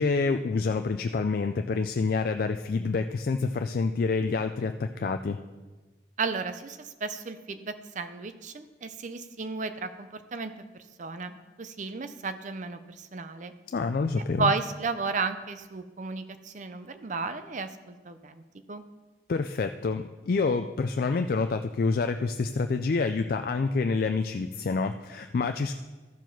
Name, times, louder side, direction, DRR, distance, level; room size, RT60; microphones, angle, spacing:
voice 1, 0.0-5.4 13.7-14.5 19.3-25.7, left 4 dB, 55° left, 7 dB, 0.3 m, -27 dB
voice 2, 6.2-10.5 11.0-13.5 14.4-18.4 18.7-18.8, right 4 dB, 45° right, 10 dB, 0.6 m, -33 dB
14.0 x 4.7 x 5.9 m, 1.3 s
head